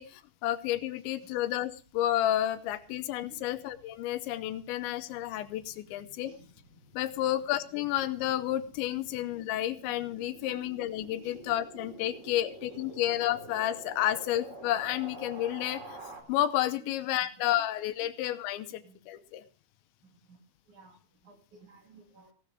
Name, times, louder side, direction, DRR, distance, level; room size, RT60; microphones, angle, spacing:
voice 1, 0.0-6.3 6.9-16.0 16.3-19.4, left 13 dB, 80° left, 12 dB, 3.1 m, -31 dB
sound 1, 1.6-16.2, right 2 dB, 20° right, 2.3 m, -50 dB
voice 2, 5.9-6.4 7.2-7.3 9.0-9.1 10.4-10.6 11.2-11.4 18.0-18.1 18.8-19.0 20.2-20.4 20.7-22.3, right 5 dB, 50° right, 4 dB, 3.0 m, -57 dB
17.0 x 12.0 x 4.8 m, 0.41 s
omnidirectional pair, 5.3 m